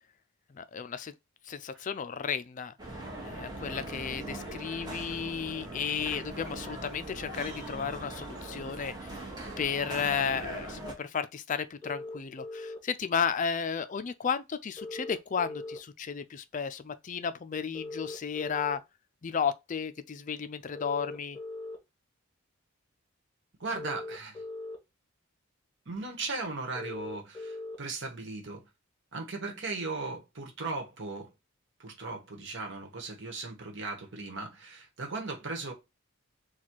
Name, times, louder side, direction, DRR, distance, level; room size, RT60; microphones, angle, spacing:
voice 1, 0.5-1.1 1.5-2.7 3.2-9.3 9.6-18.8 19.2-21.4, left 6 dB, 35° left, 0.4 m, -33 dB
sound 1, 2.8-10.9, right 1 dB, 20° right, 1.2 m, -40 dB
sound 2, 11.8-12.8 14.8-15.8 17.7-18.8 20.7-21.8 23.7-24.8 26.7-27.8, left 2 dB, 15° left, 1.6 m, -40 dB
voice 2, 23.6-24.4 25.9-28.6 29.1-31.3 31.8-35.7, right 3 dB, 60° right, 1.3 m, -37 dB
4.2 x 2.3 x 4.5 m
head